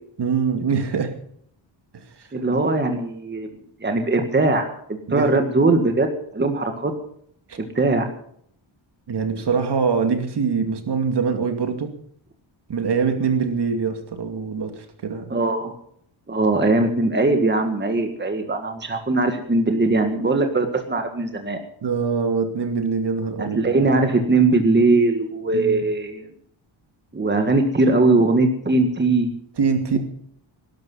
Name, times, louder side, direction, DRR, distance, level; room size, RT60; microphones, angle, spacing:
voice 1, 0.2-1.1 1.9-2.0 5.1-5.5 7.5-7.6 9.1-11.9 12.7-14.7 15.0-15.3 21.8-23.7 25.5-25.8 29.6-30.0, right 5 dB, 55° right, 6 dB, 2.5 m, -23 dB
voice 2, 2.3-3.5 3.8-6.9 7.6-8.1 15.3-15.7 16.3-21.6 23.4-26.3 27.1-29.3, right 3 dB, 20° right, 5 dB, 1.8 m, -20 dB
19.0 x 12.0 x 5.6 m, 0.66 s
wide cardioid pair, 135°, 47 cm